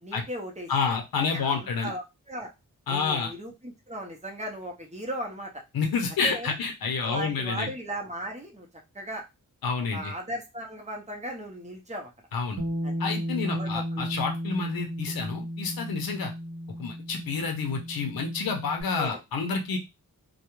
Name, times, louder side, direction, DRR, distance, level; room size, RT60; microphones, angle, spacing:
voice 1, 0.0-0.7 1.2-2.5 2.9-5.5 6.2-6.5 7.0-8.7 8.9-9.2 9.9-12.1 12.8-12.9 13.4-14.1 19.0-19.2, right 1 dB, 20° right, 1 dB, 0.5 m, -37 dB
voice 2, 0.7-1.9 2.9-3.3 5.7-7.7 9.6-10.1 12.3-12.6 13.0-16.3 16.8-19.8, left 5 dB, 85° left, 3 dB, 0.6 m, -29 dB
Bass guitar, 12.6-18.8, equal, 55° right, 0.7 m, -34 dB
2.3 x 2.0 x 2.9 m, 0.24 s
wide cardioid pair, 105°, 35 cm